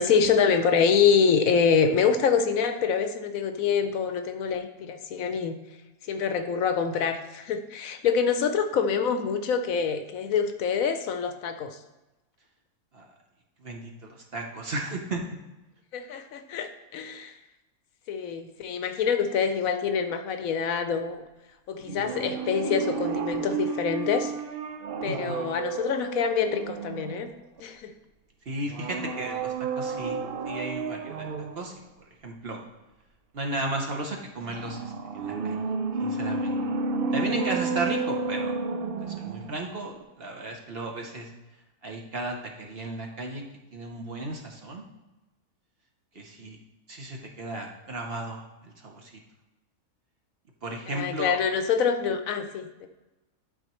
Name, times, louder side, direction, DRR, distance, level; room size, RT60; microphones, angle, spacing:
voice 1, 0.0-5.5 6.1-11.8 15.9-17.3 18.1-21.2 21.7-24.3 25.0-27.3 27.6-27.9 50.9-52.9, left 6 dB, 70° left, 8 dB, 1.0 m, -25 dB
voice 2, 13.6-15.2 25.1-25.4 28.5-31.3 31.5-31.7 32.2-32.6 33.3-35.6 36.0-36.6 37.1-38.5 39.0-41.3 41.8-43.4 43.7-44.8 46.1-46.6 46.9-49.1 50.6-51.4, right 2 dB, 50° right, 1 dB, 0.9 m, -34 dB
sound 1, 21.9-27.6 28.7-31.7 34.5-39.7 40.0-40.1, right 4 dB, 65° right, 0.5 m, -31 dB
11.5 x 4.1 x 3.0 m, 1.1 s
omnidirectional pair, 1.6 m